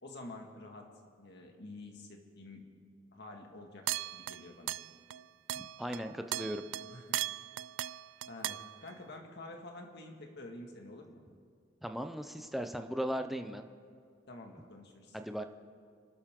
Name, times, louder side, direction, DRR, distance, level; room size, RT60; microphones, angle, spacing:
voice 1, 0.0-0.9 1.2-2.7 3.1-4.7 6.8-7.2 8.3-11.2 14.3-15.2, left 2 dB, 60° left, 2 dB, 2.0 m, -49 dB
sound 1, 3.9-5.2 5.5-8.9, right 14 dB, 70° right, 0.3 m, -38 dB
voice 2, 5.6-6.6 11.8-13.6 15.1-15.4, equal, ahead, 6 dB, 0.6 m, -37 dB
29.0 x 12.5 x 3.8 m, 2.2 s
head